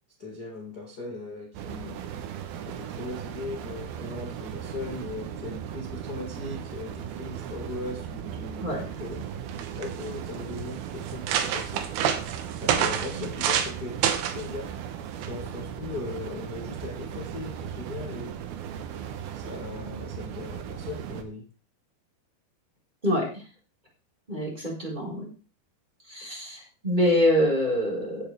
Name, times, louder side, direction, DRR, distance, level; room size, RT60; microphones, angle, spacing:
voice 1, 0.2-2.0 2.6-9.3 9.8-11.9 12.5-13.9 14.3-14.7 15.2-18.3 19.3-21.4, left 3 dB, 50° left, -1 dB, 1.1 m, -38 dB
sound 1, 1.5-21.2, right 9 dB, 70° right, 2.6 m, -37 dB
voice 2, 8.6-8.9 13.2-13.3 23.0-23.4 24.3-25.3 26.0-28.3, equal, 10° right, -3 dB, 4.4 m, -25 dB
sound 2, 9.2-9.3 9.5-10.1 10.7-10.8 11.1-13.7 14.0-14.4 15.2-15.5, right 9 dB, 90° right, 3.7 m, -27 dB
15.5 x 8.9 x 3.5 m, 0.35 s
omnidirectional pair, 5.3 m